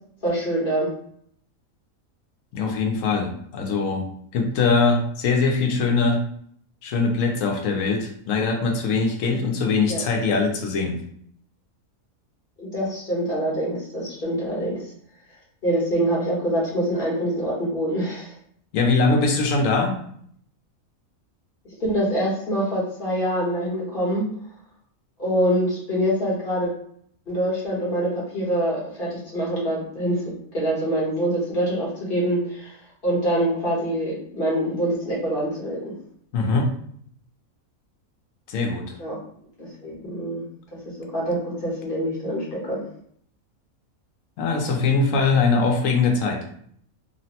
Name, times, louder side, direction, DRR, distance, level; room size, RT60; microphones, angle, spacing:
voice 1, 0.2-0.9 9.9-10.0 12.6-14.8 15.6-18.3 21.6-24.3 25.2-26.7 27.3-30.2 30.5-32.7 33.0-36.0 39.0-39.2 39.6-40.4 40.7-40.8 41.1-42.8, right 1 dB, 45° left, -5 dB, 1.0 m, -25 dB
voice 2, 2.5-6.2 6.8-11.0 18.7-20.0 36.3-36.7 38.5-38.9 44.4-46.4, left 4 dB, 75° left, 2 dB, 1.0 m, -22 dB
3.2 x 2.1 x 2.8 m, 0.64 s
omnidirectional pair, 1.5 m